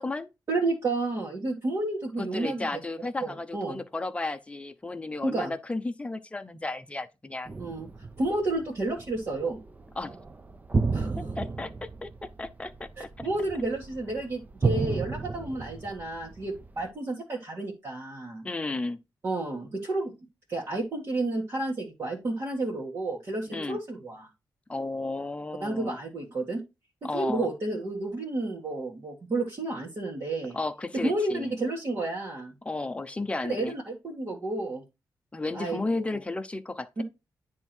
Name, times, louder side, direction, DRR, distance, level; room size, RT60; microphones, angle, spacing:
voice 1, 0.5-2.6 3.2-3.8 5.2-5.5 7.6-7.9 8.2-9.6 10.9-11.1 13.0-18.4 19.2-20.1 20.5-24.3 25.6-26.6 27.1-30.6 31.0-32.5 33.4-34.8 35.5-35.8 36.1-36.2 37.0-37.1, right 2 dB, 40° right, 1.9 m, -31 dB
voice 2, 2.2-7.7 10.0-10.2 11.2-13.3 18.4-19.0 23.5-23.8 24.7-26.0 27.0-27.5 30.5-31.5 32.6-33.7 35.3-37.0, left 2 dB, 15° left, 0.7 m, -33 dB
sound 1, 7.5-16.9, right 4 dB, 20° right, 0.6 m, -33 dB
9.9 x 3.6 x 4.5 m
wide cardioid pair, 125°, 8 cm